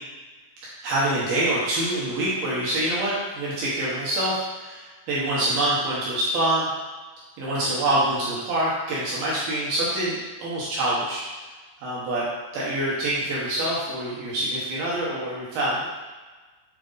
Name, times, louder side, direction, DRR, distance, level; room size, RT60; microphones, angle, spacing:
voice 1, 0.8-6.7 7.4-11.2 11.8-12.3 12.5-15.9, right 1 dB, 75° right, -7 dB, 2.2 m, -25 dB
8.0 x 4.1 x 3.9 m, 1.3 s
omnidirectional pair, 5.8 m